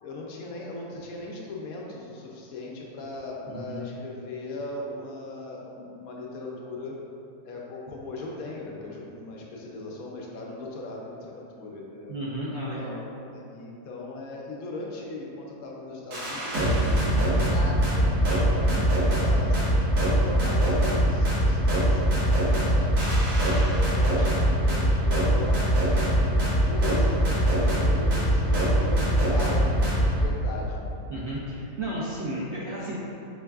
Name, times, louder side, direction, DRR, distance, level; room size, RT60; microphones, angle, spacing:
voice 1, 0.0-6.9 7.4-12.1 12.7-13.0 13.3-19.7 20.1-23.0 23.5-30.9, left 2 dB, 75° left, -2 dB, 1.0 m, -38 dB
voice 2, 3.5-3.8 12.1-13.0 18.4-18.8 20.3-20.5 31.1-33.0, right 1 dB, 65° right, -7 dB, 0.7 m, -33 dB
sound 1, 16.1-30.3, right 1 dB, 85° right, 1.5 m, -22 dB
4.5 x 3.4 x 2.3 m, 2.7 s
omnidirectional pair, 1.6 m